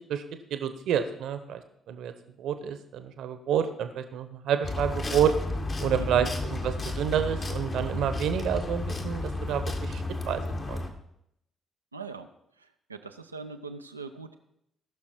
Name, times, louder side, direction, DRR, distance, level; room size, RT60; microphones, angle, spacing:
voice 1, 0.5-1.6 1.9-2.1 2.4-5.3 5.8-10.4 10.7-10.8, right 9 dB, 60° right, 9 dB, 1.1 m, -29 dB
sound 1, 4.6-10.9, left 2 dB, 40° left, 1.8 m, -32 dB
voice 2, 6.0-6.3 11.9-12.3 12.6-14.4, right 4 dB, 90° right, 7 dB, 0.6 m, -41 dB
18.5 x 6.3 x 4.5 m, 0.78 s
figure-of-eight pair, 45°, 0 cm